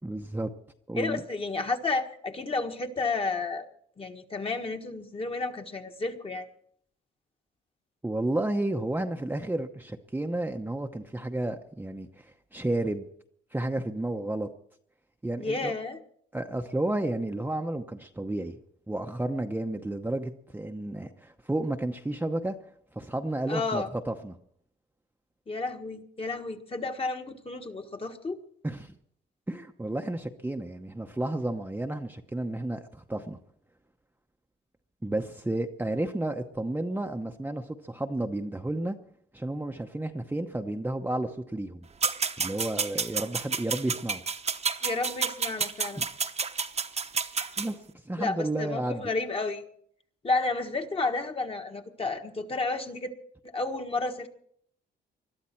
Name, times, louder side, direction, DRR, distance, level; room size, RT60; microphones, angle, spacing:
voice 1, 0.0-0.5 0.9-1.2 8.0-13.1 13.5-14.5 15.2-15.7 16.3-18.6 18.9-22.6 23.0-24.4 28.6-28.9 29.5-33.4 35.0-39.0 39.3-41.9 42.4-44.2 46.0-46.1 47.6-47.8 48.0-49.0, right 1 dB, 10° right, 4 dB, 0.8 m, -32 dB
voice 2, 0.9-3.7 4.0-6.5 15.4-16.0 23.5-23.9 25.5-28.4 44.8-46.0 48.2-49.6 50.2-53.1 53.4-54.3, left 3 dB, 30° left, 5 dB, 1.5 m, -31 dB
sound 1, 42.0-47.7, right 5 dB, 35° right, 1.0 m, -30 dB
21.0 x 12.5 x 4.5 m, 0.66 s
cardioid pair, 90°, 20 cm